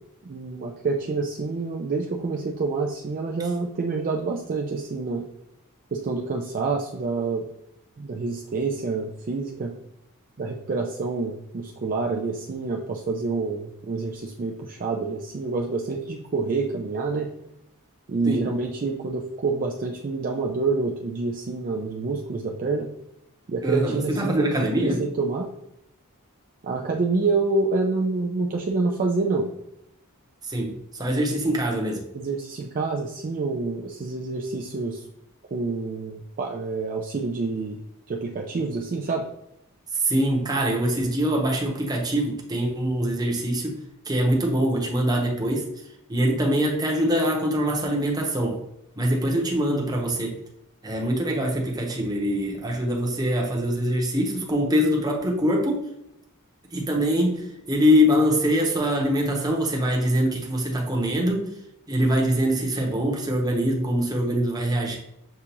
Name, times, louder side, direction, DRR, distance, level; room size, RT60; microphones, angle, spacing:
voice 1, 0.2-5.2 5.9-7.5 8.0-9.7 10.4-17.3 18.1-22.9 23.5-25.5 26.6-29.5 32.1-35.0 35.5-37.8 38.1-39.3, right 3 dB, 40° right, 0 dB, 0.4 m, -27 dB
voice 2, 23.6-25.0 30.4-32.1 40.0-43.8 44.0-45.7 46.1-48.6 49.0-50.4 50.8-55.8 56.7-61.5 61.9-65.0, equal, 20° right, -1 dB, 0.8 m, -23 dB
6.6 x 2.4 x 2.9 m, 0.80 s
head